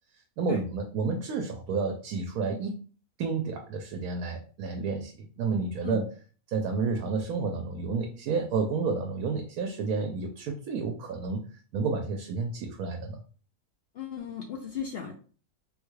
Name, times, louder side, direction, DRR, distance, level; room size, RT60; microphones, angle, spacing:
voice 1, 0.4-2.7 3.2-6.0 6.5-11.4 11.7-13.2, right 4 dB, 80° right, 3 dB, 1.0 m, -30 dB
voice 2, 13.9-15.1, left 7 dB, 75° left, 2 dB, 0.5 m, -36 dB
3.6 x 2.3 x 3.1 m, 0.39 s
omnidirectional pair, 1.5 m